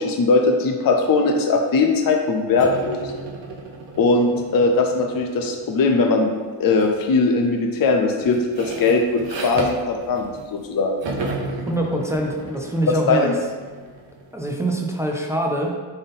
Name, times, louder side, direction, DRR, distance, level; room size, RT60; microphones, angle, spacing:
voice 1, 0.0-3.1 4.0-11.0 13.1-13.4, left 3 dB, 50° left, 3 dB, 0.5 m, -20 dB
sound 1, 2.6-5.9 6.8-7.1 7.4-10.7 11.0-14.6, right 3 dB, 70° right, 0.9 m, -34 dB
voice 2, 11.7-13.3 14.3-15.8, right 1 dB, 5° right, 0 dB, 0.3 m, -24 dB
4.0 x 3.7 x 3.5 m, 1.5 s
wide cardioid pair, 130°, 46 cm